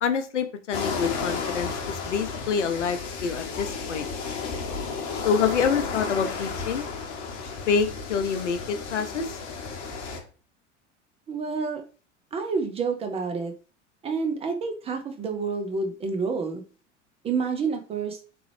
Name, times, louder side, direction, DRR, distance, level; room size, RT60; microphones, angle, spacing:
voice 1, 0.0-4.1 5.2-6.8 7.7-9.3, left 6 dB, 75° left, 9 dB, 0.6 m, -26 dB
sound 1, 0.7-10.2, left 5 dB, 45° left, 0.9 m, -33 dB
voice 2, 11.3-11.8 12.3-13.5 14.0-16.6 17.2-18.2, right 4 dB, 15° right, 5 dB, 0.4 m, -28 dB
3.6 x 3.1 x 3.1 m, 0.37 s
figure-of-eight pair, 80°, 36 cm